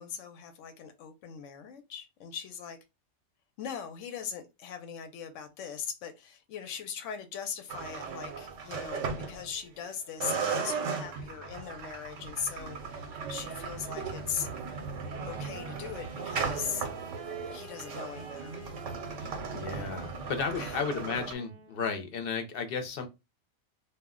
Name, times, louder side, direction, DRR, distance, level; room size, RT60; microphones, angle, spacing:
voice 1, 0.0-2.8 3.6-14.5 15.2-16.9 17.5-18.6 20.6-20.8, left 7 dB, 90° left, 0.9 m, -40 dB
sound 1, 7.7-9.9 10.2-21.3, right 5 dB, 85° right, 1.0 m, -37 dB
Wind instrument woodwind instrument, 15.1-22.0, right 4 dB, 60° right, 0.7 m, -49 dB
voice 2, 19.2-23.1, left 5 dB, 60° left, 0.7 m, -34 dB
2.3 x 2.1 x 3.5 m
omnidirectional pair, 1.2 m